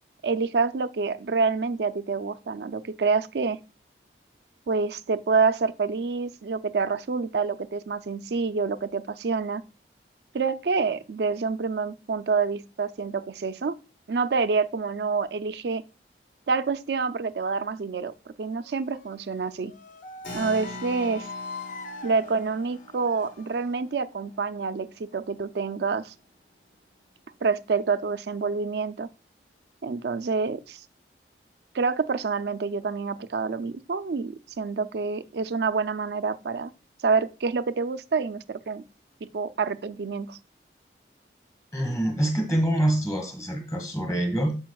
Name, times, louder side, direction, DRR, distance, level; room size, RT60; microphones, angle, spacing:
voice 1, 0.2-3.6 4.7-9.6 10.3-13.8 14.1-15.8 16.5-19.7 20.3-21.3 22.0-26.1 27.4-29.1 29.8-30.8 31.7-36.7 37.0-38.8 39.2-40.4, right 4 dB, 70° right, 0.4 m, -27 dB
sound 1, 18.5-23.8, left 3 dB, 45° left, 0.5 m, -42 dB
Keyboard (musical), 20.2-26.3, equal, 60° left, 3.4 m, -44 dB
voice 2, 41.7-44.6, right 1 dB, 20° left, 1.3 m, -25 dB
10.5 x 5.0 x 2.3 m
head